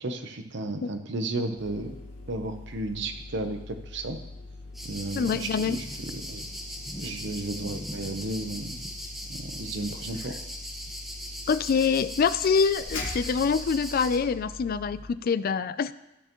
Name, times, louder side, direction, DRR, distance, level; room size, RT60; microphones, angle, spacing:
voice 1, 0.0-2.0 2.3-4.2 4.8-6.4 7.0-8.8 9.3-10.4, right 2 dB, 65° right, 6 dB, 0.9 m, -33 dB
sound 1, 1.6-15.1, left 2 dB, 70° left, 2.0 m, -42 dB
sound 2, 4.7-14.2, equal, ahead, 1.1 m, -39 dB
voice 2, 5.2-5.8 11.5-15.9, left 5 dB, 50° left, 14 dB, 0.3 m, -25 dB
13.0 x 6.6 x 3.0 m, 0.92 s
head